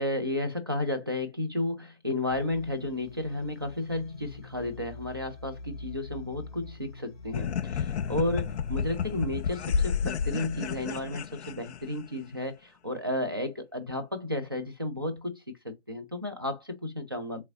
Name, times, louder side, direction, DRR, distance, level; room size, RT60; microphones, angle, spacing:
voice 1, 0.0-17.5, left 1 dB, 20° right, 0.4 m, -33 dB
sound 1, 2.3-11.0, left 3 dB, 35° left, 0.9 m, -45 dB
sound 2, 7.3-12.1, left 7 dB, 80° left, 0.5 m, -31 dB
3.6 x 3.1 x 2.7 m
figure-of-eight pair, 145°, 33 cm